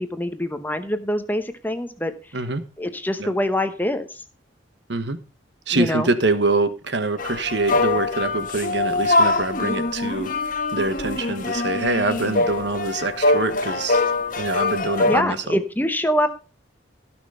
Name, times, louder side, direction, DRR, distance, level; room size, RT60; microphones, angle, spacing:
voice 1, 0.0-2.3 2.8-4.2 5.7-6.1 15.1-16.3, left 1 dB, 10° left, 9 dB, 0.8 m, -24 dB
voice 2, 5.7-10.3 10.7-14.0 14.4-15.6, right 2 dB, 60° right, 11 dB, 1.2 m, -24 dB
sound 1, 7.2-15.2, left 2 dB, 45° left, 1.1 m, -23 dB
15.5 x 6.2 x 5.5 m, 0.35 s
head